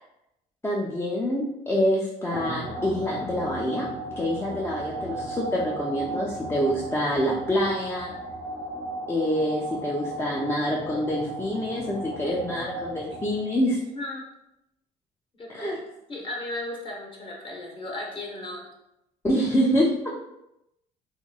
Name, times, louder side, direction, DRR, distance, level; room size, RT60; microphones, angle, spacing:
voice 1, 0.6-3.9 4.2-8.1 9.1-13.8 15.5-15.8 19.2-19.9, equal, 15° left, -4 dB, 0.4 m, -26 dB
sound 1, 2.3-13.7, right 2 dB, 65° left, 1.5 m, -35 dB
voice 2, 13.9-14.3 15.4-15.7 16.1-18.7, left 1 dB, 35° left, -1 dB, 0.9 m, -35 dB
2.9 x 2.6 x 2.3 m, 0.85 s
cardioid pair, 85°, 16 cm